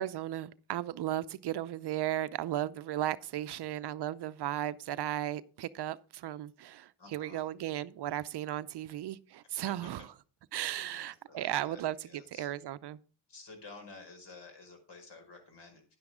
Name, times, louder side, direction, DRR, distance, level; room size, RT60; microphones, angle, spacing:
voice 1, 0.0-10.1 10.5-13.0, right 12 dB, 55° right, 0.6 m, -35 dB
voice 2, 3.4-3.7 7.0-7.5 9.6-9.9 10.8-12.5 13.3-15.9, left 3 dB, 60° left, 5.4 m, -52 dB
10.5 x 9.7 x 3.6 m
cardioid pair, 75°, 48 cm